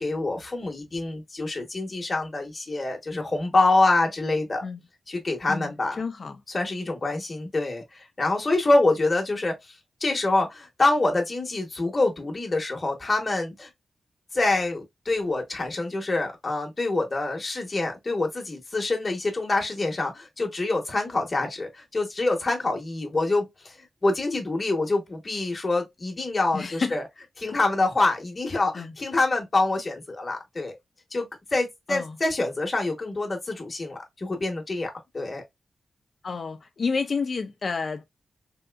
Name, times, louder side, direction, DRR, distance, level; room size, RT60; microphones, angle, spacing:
voice 1, 0.0-4.6 5.1-6.0 6.5-13.7 14.3-27.0 27.4-30.8 31.1-35.4, left 2 dB, 35° left, 1.1 m, -26 dB
voice 2, 5.5-6.4 26.5-27.0 28.7-28.9 31.9-32.2 36.2-38.0, left 4 dB, 55° left, 0.5 m, -30 dB
3.6 x 2.7 x 2.4 m
wide cardioid pair, 105°, 0 cm